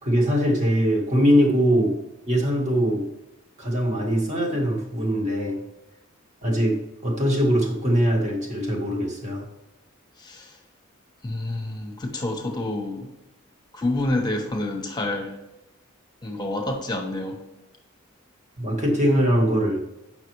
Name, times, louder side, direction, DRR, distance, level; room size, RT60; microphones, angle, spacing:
voice 1, 0.0-2.0 2.3-3.1 3.6-5.6 6.4-9.4 18.6-19.8, equal, 35° right, 0 dB, 1.7 m, -22 dB
voice 2, 10.2-10.6 11.2-13.1 13.7-15.4 16.2-17.4, left 2 dB, 20° left, 3 dB, 1.1 m, -28 dB
8.4 x 6.0 x 3.1 m, 0.96 s
head